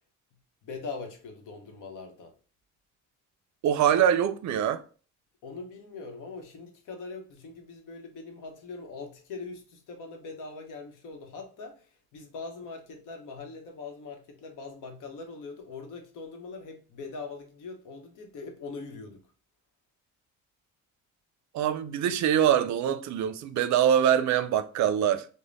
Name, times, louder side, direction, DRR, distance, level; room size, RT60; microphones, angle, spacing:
voice 1, 0.6-2.3 5.4-19.3, left 4 dB, 85° left, 0.9 m, -42 dB
voice 2, 3.6-4.8 21.5-25.3, right 9 dB, 65° right, 0.4 m, -24 dB
5.0 x 2.1 x 2.5 m
cardioid pair, 115°, 31 cm